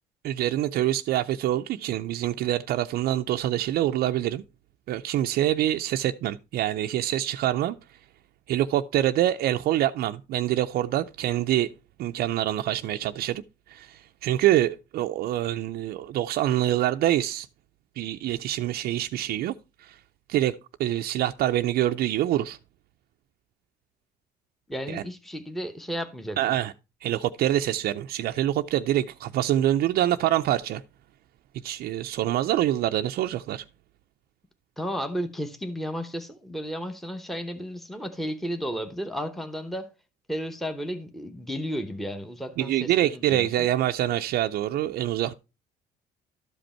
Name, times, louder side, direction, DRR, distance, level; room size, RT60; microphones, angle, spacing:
voice 1, 0.2-4.4 4.9-7.8 8.5-11.7 12.0-13.4 13.7-17.5 18.0-19.5 19.8-20.0 20.3-22.6 24.9-25.0 26.4-26.7 27.0-30.8 31.6-33.6 42.6-45.3, right 13 dB, 65° right, 0.4 m, -25 dB
voice 2, 24.7-26.6 34.8-39.9 40.3-43.7, equal, ahead, 0.9 m, -33 dB
12.5 x 5.2 x 4.3 m
cardioid pair, 110°, 17 cm